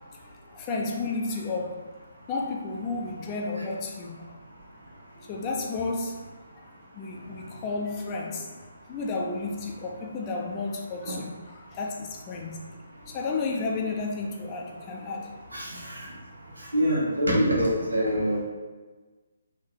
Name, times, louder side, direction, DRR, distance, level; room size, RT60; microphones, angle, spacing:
voice 1, 0.1-1.9 2.3-4.4 5.3-6.2 6.5-6.7 6.9-8.5 8.9-12.6 13.0-15.3, left 3 dB, 25° left, 0 dB, 0.6 m, -32 dB
voice 2, 16.7-18.4, equal, 80° right, -7 dB, 1.4 m, -24 dB
3.7 x 2.7 x 4.4 m, 1.3 s
figure-of-eight pair, 140°, 0 cm